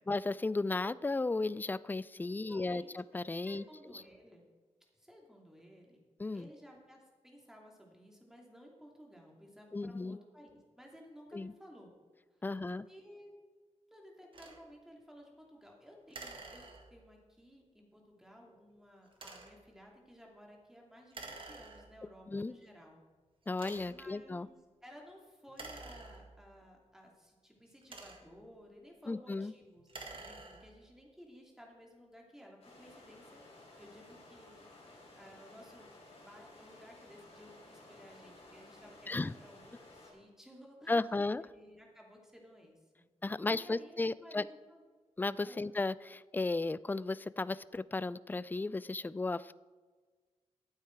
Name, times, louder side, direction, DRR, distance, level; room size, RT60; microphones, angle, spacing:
voice 1, 0.1-2.8 3.1-3.6 6.2-6.5 9.7-10.2 11.3-11.5 12.4-12.9 22.3-22.6 23.5-24.5 29.1-29.5 39.1-39.3 40.9-41.4 43.2-44.4 45.2-49.5, left 3 dB, 15° left, 18 dB, 0.3 m, -34 dB
voice 2, 2.5-2.9 3.5-4.4 4.9-6.0 6.3-11.9 12.3-13.3 13.9-23.0 23.9-24.6 24.8-33.4 33.8-41.0 41.4-43.0 43.5-44.8 45.4-45.6, equal, 5° right, 0 dB, 2.7 m, -56 dB
sound 1, 14.3-14.6 16.1-17.2 19.1-19.7 21.1-22.1 22.8-22.9 23.5-24.1 25.5-26.6 27.6-28.5 29.8-30.9, right 3 dB, 45° right, 1.9 m, -49 dB
sound 2, 32.6-40.1, left 2 dB, 55° left, 4.2 m, -56 dB
12.5 x 8.9 x 4.6 m, 1.4 s
wide cardioid pair, 90°, 12 cm